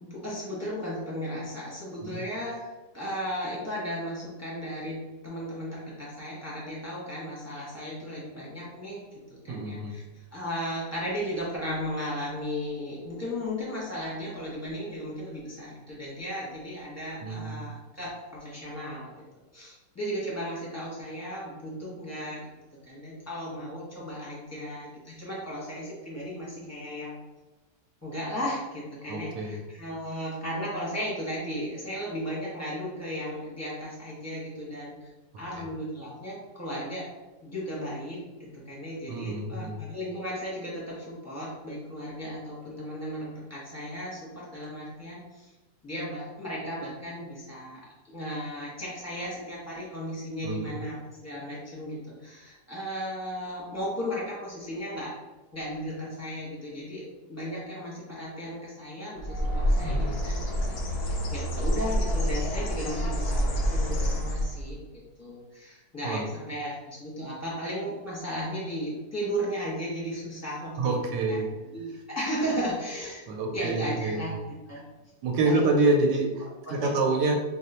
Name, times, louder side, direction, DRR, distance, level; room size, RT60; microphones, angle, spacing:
voice 1, 0.0-2.6 2.9-9.0 9.3-10.0 10.3-19.1 19.5-22.5 22.8-27.1 28.0-35.1 35.4-37.1 37.4-38.2 38.7-45.5 45.8-50.9 51.2-55.1 55.5-60.4 60.7-64.8 65.2-71.0 71.3-71.4 71.7-73.3 73.5-74.4 74.7-74.8 75.4-75.8 76.7-77.2, equal, 15° left, -6 dB, 0.6 m, -35 dB
voice 2, 9.5-9.9 17.2-17.7 29.1-29.6 35.5-35.7 39.1-39.8 50.4-50.8 59.8-60.2 66.0-66.2 70.8-71.5 73.3-74.2 75.2-77.4, right 3 dB, 90° right, 3 dB, 1.2 m, -27 dB
Bird, 59.2-64.7, equal, 65° left, 0.6 m, -27 dB
3.0 x 2.0 x 4.1 m, 1.1 s
omnidirectional pair, 1.8 m